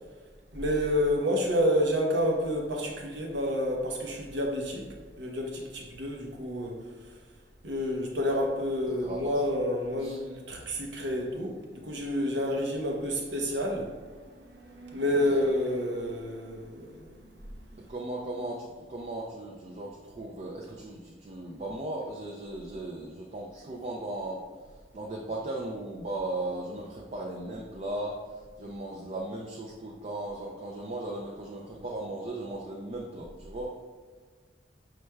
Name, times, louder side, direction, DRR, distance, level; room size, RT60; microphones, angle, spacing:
voice 1, 0.5-6.8 7.6-13.9 14.2-17.9, equal, 80° right, 0 dB, 0.8 m, -29 dB
voice 2, 9.0-9.5 10.0-10.2 15.0-15.4 17.9-33.8, right 2 dB, 40° right, -1 dB, 0.4 m, -37 dB
5.9 x 3.1 x 2.2 m, 1.5 s
head